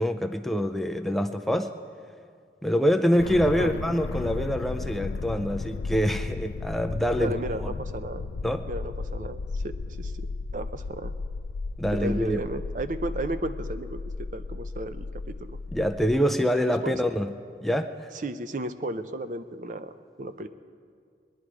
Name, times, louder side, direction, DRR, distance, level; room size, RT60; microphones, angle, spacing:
voice 1, 0.0-1.7 2.6-7.3 7.6-7.7 8.4-8.6 11.8-12.4 15.7-17.3 17.6-18.1, equal, ahead, 5 dB, 0.4 m, -25 dB
sound 1, 3.2-16.2, left 3 dB, 85° left, 0.4 m, -35 dB
voice 2, 7.2-8.3 8.7-10.3 10.5-11.1 11.9-15.6 16.6-16.9 18.1-20.5, right 1 dB, 45° right, 11 dB, 0.5 m, -34 dB
22.0 x 10.0 x 4.8 m, 2.2 s
head